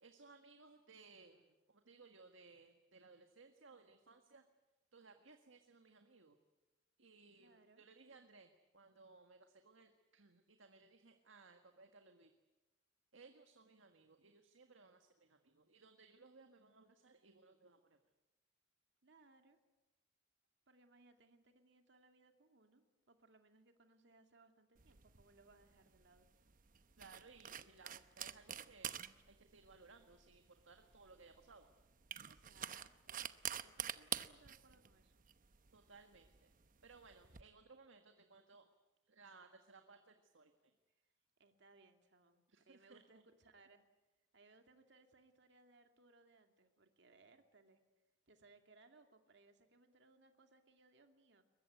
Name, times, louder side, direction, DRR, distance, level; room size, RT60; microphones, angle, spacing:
voice 1, 0.0-4.4 4.9-6.4 7.0-12.3 13.1-18.0 27.0-31.7 35.7-36.5 36.8-38.7 39.0-40.5 42.5-43.2, right 4 dB, 90° right, 6 dB, 1.7 m, -62 dB
voice 2, 7.4-7.8 19.0-19.6 20.7-26.3 32.3-33.2 33.6-35.3 41.4-43.9 44.3-47.8 48.3-51.4, right 3 dB, 65° right, 6 dB, 2.5 m, -67 dB
sound 1, 24.8-37.4, right 9 dB, 45° right, 0.9 m, -48 dB
22.5 x 21.5 x 9.3 m, 1.1 s
head